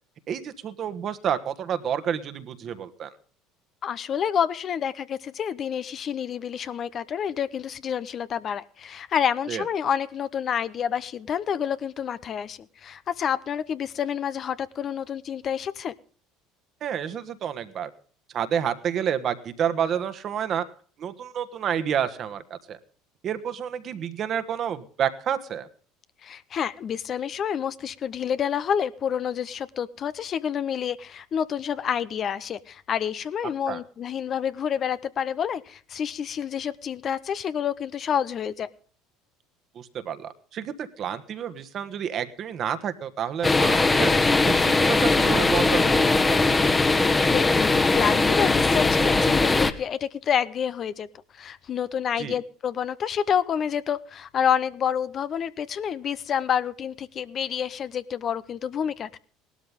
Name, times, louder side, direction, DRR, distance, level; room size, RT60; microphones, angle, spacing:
voice 1, 0.3-3.1 9.5-9.6 16.8-17.9 18.3-20.7 21.0-22.8 23.2-25.7 33.7-33.8 39.7-46.4 52.2-52.4, right 8 dB, 50° right, 10 dB, 1.5 m, -29 dB
voice 2, 3.8-15.9 26.2-38.7 46.9-51.1 51.3-59.2, left 8 dB, 45° left, 14 dB, 0.8 m, -28 dB
sound 1, 43.4-49.7, left 3 dB, 20° left, 1.3 m, -20 dB
18.0 x 12.5 x 3.6 m, 0.43 s
hypercardioid pair, 70°, 0 cm